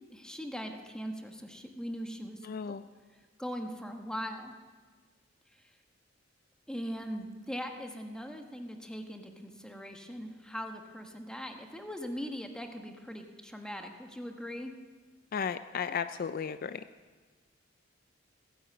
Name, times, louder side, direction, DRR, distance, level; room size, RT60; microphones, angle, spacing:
voice 1, 0.1-2.5 3.4-4.6 5.5-5.6 6.7-14.7, equal, 5° left, 4 dB, 1.3 m, -40 dB
voice 2, 2.4-2.8 15.3-16.8, left 7 dB, 50° left, 11 dB, 0.4 m, -34 dB
16.5 x 10.0 x 7.8 m, 1.4 s
head